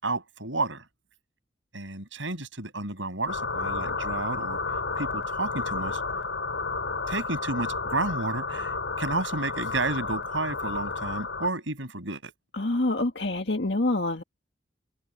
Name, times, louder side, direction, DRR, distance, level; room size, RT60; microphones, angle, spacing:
voice 1, 0.0-0.9 1.7-4.6 4.9-6.0 7.1-8.7 9.0-12.3, right 2 dB, 85° right, 6.8 m, -31 dB
sound 1, 3.3-11.5, left 4 dB, 90° left, 3.0 m, -31 dB
voice 2, 12.5-14.2, left 2 dB, 65° left, 1.8 m, -26 dB
head